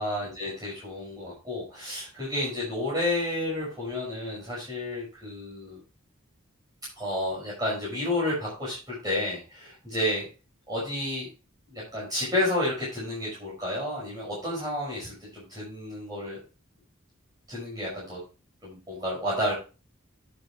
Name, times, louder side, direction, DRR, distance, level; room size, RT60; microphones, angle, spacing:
voice 1, 0.0-5.8 6.9-10.3 10.7-11.3 11.7-16.4 17.5-18.2 18.6-19.5, left 1 dB, 20° right, -7 dB, 5.7 m, -31 dB
11.0 x 7.6 x 3.1 m, 0.33 s
head